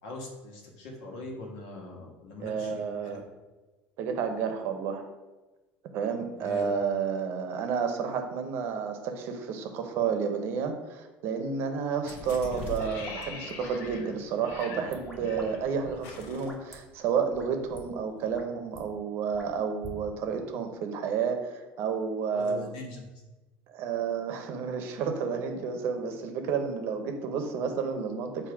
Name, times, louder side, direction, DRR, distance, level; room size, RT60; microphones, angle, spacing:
voice 1, 0.0-3.2 6.3-6.6 22.3-23.2, left 2 dB, 80° left, 0 dB, 1.4 m, -42 dB
voice 2, 2.4-3.2 4.0-5.0 5.9-22.7 23.7-28.5, right 6 dB, 55° right, 6 dB, 0.7 m, -31 dB
sound 1, 12.0-17.3 17.6-17.7, left 4 dB, 55° left, 0.8 m, -42 dB
sound 2, 12.4-14.1 14.5-15.5 15.7-16.8 17.3-17.4 17.7-17.8 18.2-18.8 19.3-20.0, equal, 5° left, 0.9 m, -46 dB
7.1 x 2.7 x 4.8 m, 1.2 s
cardioid pair, 155°, 5 cm